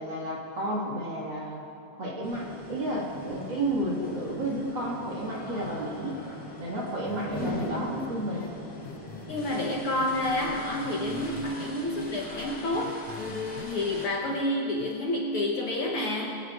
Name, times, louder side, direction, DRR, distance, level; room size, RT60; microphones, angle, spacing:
voice 1, 0.0-1.6 2.0-6.2 6.6-8.5, right 1 dB, 40° right, -4 dB, 2.4 m, -32 dB
sound 1, 2.2-14.1, equal, 15° left, 2.4 m, -40 dB
sound 2, 7.1-7.7 8.0-8.1 8.4-8.5 8.8-10.5 10.8-11.7 12.0-13.7 14.0-14.4 14.8-14.9, left 9 dB, 80° left, 1.8 m, -45 dB
voice 2, 9.3-16.4, left 1 dB, 65° left, -1 dB, 1.6 m, -29 dB
21.5 x 15.5 x 2.5 m, 2.4 s
omnidirectional pair, 3.3 m